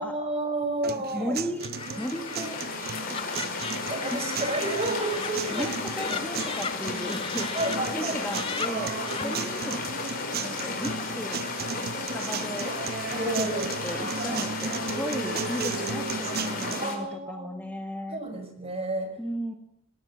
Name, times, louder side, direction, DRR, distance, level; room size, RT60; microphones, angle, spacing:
voice 1, 0.0-1.4 3.9-6.2 7.5-8.4 9.1-9.4 13.1-13.8 14.3-14.5 16.8-17.7 18.1-19.2, right 1 dB, 30° right, 6 dB, 5.1 m, -31 dB
sound 1, 0.8-16.8, right 5 dB, 45° right, 0.8 m, -35 dB
voice 2, 1.1-1.6 2.0-2.6 4.1-4.2 5.5-9.8 10.4-11.5 12.0-12.8 13.4-18.2 19.2-19.5, equal, 5° left, 5 dB, 1.7 m, -35 dB
Laughter, 1.6-7.8 8.1-9.4, left 5 dB, 25° left, 1.1 m, -38 dB
sound 2, 1.7-17.0, left 4 dB, 45° left, 5.3 m, -34 dB
21.5 x 17.5 x 7.5 m, 0.70 s
head